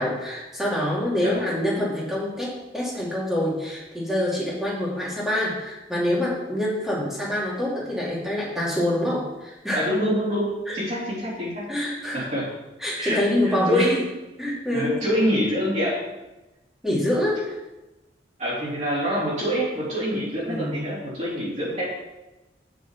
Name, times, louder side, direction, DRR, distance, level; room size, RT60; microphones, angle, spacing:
voice 1, 0.0-9.9 10.7-10.8 11.7-12.3 12.8-13.9 14.4-14.9 16.8-17.6 20.5-20.8, left 1 dB, ahead, -6 dB, 2.5 m, -26 dB
voice 2, 1.2-1.6 9.7-11.6 12.1-12.4 13.0-14.0 14.7-16.0 18.4-21.9, equal, 40° right, -8 dB, 3.3 m, -25 dB
8.1 x 6.2 x 5.8 m, 1.0 s
head